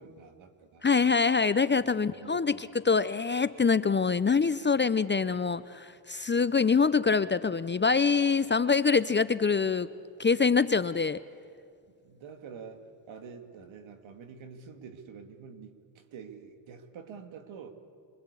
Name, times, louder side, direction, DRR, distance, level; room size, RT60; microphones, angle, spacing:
voice 1, 0.0-0.9 1.7-2.7 12.0-17.7, right 6 dB, 65° right, 6 dB, 2.7 m, -47 dB
voice 2, 0.8-9.9 10.2-11.2, left 5 dB, 20° left, 15 dB, 0.7 m, -25 dB
26.0 x 24.0 x 8.5 m, 2.2 s
supercardioid pair, 60°, 50 cm